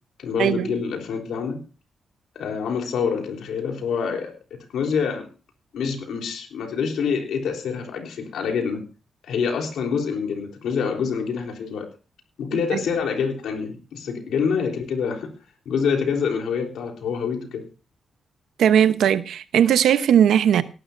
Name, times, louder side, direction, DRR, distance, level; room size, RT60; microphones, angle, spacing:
voice 1, 0.2-1.6 2.4-5.3 5.7-8.8 9.2-11.9 12.4-15.3 15.7-17.6, left 6 dB, 85° left, 3.7 m, -26 dB
voice 2, 18.6-20.6, right 9 dB, 85° right, 1.0 m, -18 dB
18.5 x 12.0 x 2.7 m
cardioid pair, 95°, 0 cm